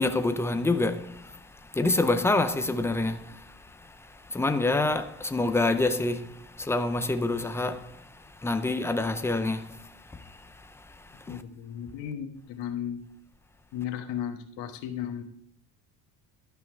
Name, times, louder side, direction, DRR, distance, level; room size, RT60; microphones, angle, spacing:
voice 1, 0.0-11.4, left 2 dB, 5° left, 0.4 m, -28 dB
voice 2, 11.3-13.0 13.7-15.2, left 9 dB, 85° left, 1.4 m, -35 dB
12.0 x 5.6 x 4.5 m
cardioid pair, 140°, 41 cm